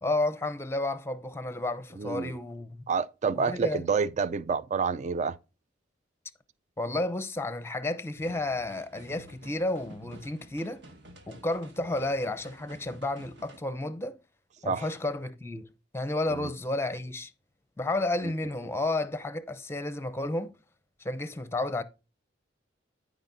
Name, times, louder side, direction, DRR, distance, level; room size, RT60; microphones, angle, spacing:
voice 1, 0.0-2.8 3.3-3.9 6.8-10.8 11.3-14.2 14.6-15.7 15.9-17.3 17.8-20.5 21.0-21.8, left 2 dB, 15° left, 0.6 m, -31 dB
voice 2, 2.0-2.4 2.9-5.4 14.7-14.9 16.3-16.5 18.2-18.3, right 5 dB, 40° right, 0.4 m, -28 dB
sound 1, 8.1-13.6, right 1 dB, 65° right, 1.5 m, -51 dB
13.0 x 5.1 x 2.6 m
head